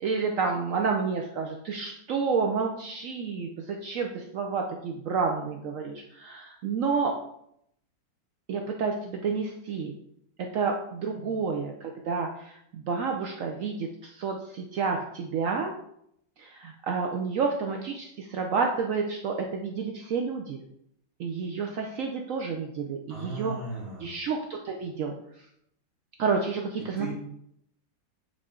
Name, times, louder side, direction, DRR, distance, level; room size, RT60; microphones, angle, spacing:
voice 1, 0.0-3.5 3.8-7.1 8.5-9.9 10.5-12.3 12.7-15.7 16.4-20.6 21.2-23.5 24.0-24.4 24.6-25.2 26.2-27.1, right 5 dB, 85° right, 2 dB, 0.7 m, -29 dB
voice 2, 11.1-11.5 23.1-24.2 27.0-27.1, right 2 dB, 35° right, -10 dB, 1.9 m, -37 dB
8.7 x 3.7 x 3.6 m, 0.74 s
omnidirectional pair, 2.1 m